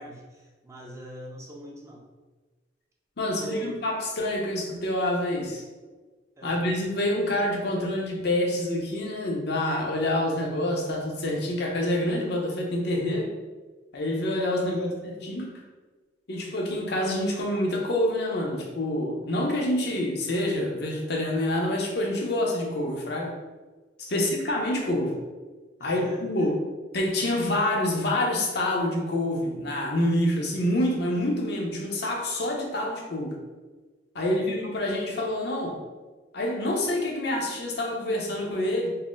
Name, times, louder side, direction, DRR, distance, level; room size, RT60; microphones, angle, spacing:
voice 1, 0.0-2.1 3.2-3.8 6.4-6.6 14.5-15.0 19.8-19.9 24.0-24.5 25.8-26.5 34.2-34.5, equal, 15° right, -3 dB, 0.6 m, -43 dB
voice 2, 3.2-5.6 6.4-13.3 13.9-15.5 16.3-23.3 24.0-25.2 25.8-26.6 26.9-33.4 34.1-35.8 36.3-38.9, left 1 dB, 65° left, 0 dB, 0.7 m, -27 dB
4.1 x 2.0 x 3.7 m, 1.3 s
head